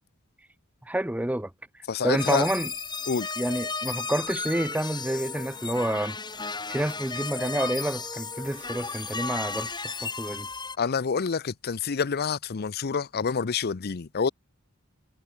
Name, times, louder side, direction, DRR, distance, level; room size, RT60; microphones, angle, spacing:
voice 1, 0.9-1.5 2.0-2.7 3.4-6.2 6.7-10.5, right 1 dB, 5° right, 0.7 m, -28 dB
voice 2, 1.9-2.5 3.1-3.3 10.8-14.3, left 5 dB, 45° left, 0.6 m, -27 dB
sound 1, 2.2-10.8, left 4 dB, 20° left, 5.2 m, -34 dB
head